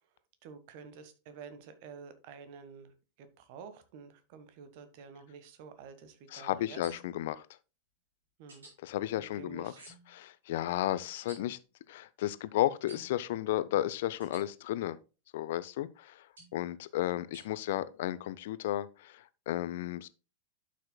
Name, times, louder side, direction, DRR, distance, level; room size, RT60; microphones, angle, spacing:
voice 1, 0.4-7.0 8.4-8.7 9.2-9.8, right 6 dB, 50° right, 1.4 m, -50 dB
voice 2, 6.3-7.5 8.8-9.7 10.1-11.6 11.9-15.0 15.3-16.3 16.5-20.1, left 13 dB, 55° left, 0.6 m, -33 dB
sound 1, 6.8-7.3 8.5-8.7 9.8-10.2 11.1-11.4 12.9-13.2 14.2-14.4 16.4-16.6 17.3-17.5, right 2 dB, 70° right, 4.7 m, -52 dB
11.5 x 6.4 x 2.2 m
figure-of-eight pair, 90°, 0 cm